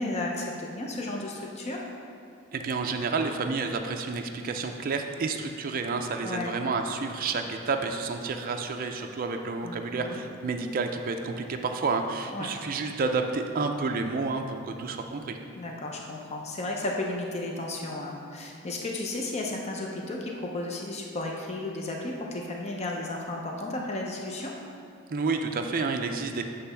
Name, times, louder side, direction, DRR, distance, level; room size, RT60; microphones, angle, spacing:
voice 1, 0.0-1.8 6.2-6.5 9.6-10.2 12.3-12.5 15.6-24.5, left 2 dB, 30° left, -1 dB, 0.6 m, -33 dB
voice 2, 2.5-15.4 25.1-26.4, right 4 dB, 45° right, 4 dB, 0.4 m, -30 dB
8.0 x 3.3 x 5.5 m, 2.5 s
head